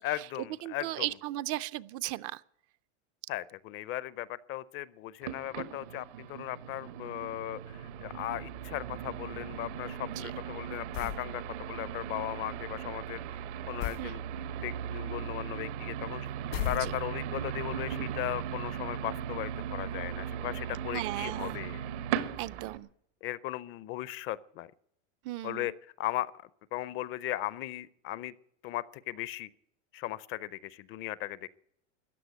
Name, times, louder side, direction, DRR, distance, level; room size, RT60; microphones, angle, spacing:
voice 1, 0.0-1.1 3.3-13.2 13.7-14.2 14.6-16.3 16.6-21.8 23.2-24.7 25.4-25.7 26.0-26.3 26.7-28.3 28.6-29.5 29.9-31.5, left 15 dB, 35° left, 19 dB, 0.5 m, -37 dB
voice 2, 0.6-2.4 10.1-10.3 14.0-14.2 16.8-16.9 20.9-21.6 22.4-22.9 25.2-25.7, right 16 dB, 40° right, 16 dB, 0.4 m, -36 dB
sound 1, 5.2-22.8, right 9 dB, 80° right, 1.4 m, -38 dB
sound 2, 10.9-11.3 13.8-14.1 16.5-17.3, left 13 dB, 80° left, 1.7 m, -35 dB
14.5 x 9.7 x 7.8 m, 0.73 s
supercardioid pair, 140°, 35 cm